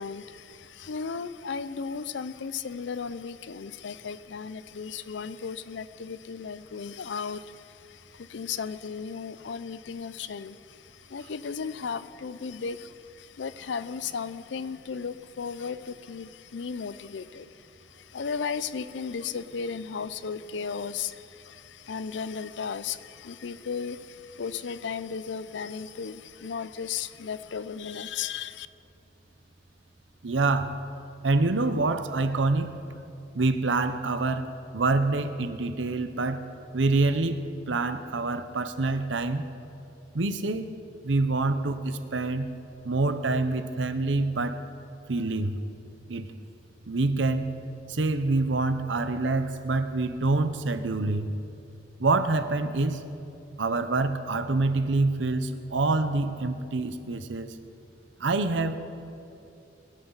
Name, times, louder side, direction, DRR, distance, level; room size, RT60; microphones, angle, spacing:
voice 1, 0.0-28.7, left 6 dB, 75° left, 15 dB, 0.5 m, -35 dB
voice 2, 30.2-30.8 31.2-32.8 33.3-36.5 36.7-39.5 40.1-40.7 41.0-42.5 42.8-44.6 45.1-45.6 46.1-46.3 46.9-47.6 47.9-51.3 52.0-53.0 53.6-57.6 58.2-58.8, right 3 dB, 90° right, 10 dB, 0.8 m, -26 dB
21.5 x 11.5 x 4.0 m, 2.6 s
head